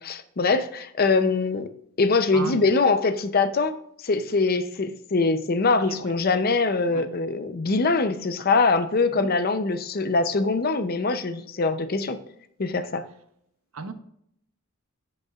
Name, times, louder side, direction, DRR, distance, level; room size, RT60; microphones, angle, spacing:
voice 1, 0.0-1.7 2.0-3.8 4.0-12.2 12.6-13.0, left 3 dB, 45° left, 0.6 m, -23 dB
voice 2, 2.3-2.6 5.8-6.1 6.9-7.2 9.1-9.3 13.7-13.9, right 3 dB, 75° right, 0.9 m, -36 dB
16.0 x 5.5 x 2.4 m
head